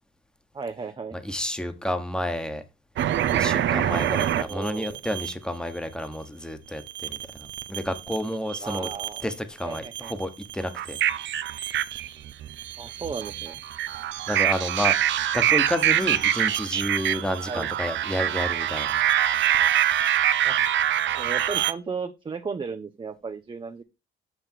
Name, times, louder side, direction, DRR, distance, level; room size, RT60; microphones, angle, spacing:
voice 1, 0.5-1.2 4.4-5.0 8.6-9.3 9.6-10.1 12.8-13.6 17.5-17.7 20.4-20.6 21.2-23.8, right 5 dB, 25° right, 0.6 m, -35 dB
voice 2, 1.1-2.6 3.3-8.9 9.2-11.0 13.9-19.0, left 1 dB, 5° left, 1.2 m, -30 dB
sound 1, 3.0-5.3 6.9-8.2 8.5-9.3 9.7-21.7, right 11 dB, 70° right, 0.6 m, -25 dB
6.5 x 6.0 x 4.5 m
cardioid pair, 90°, 20 cm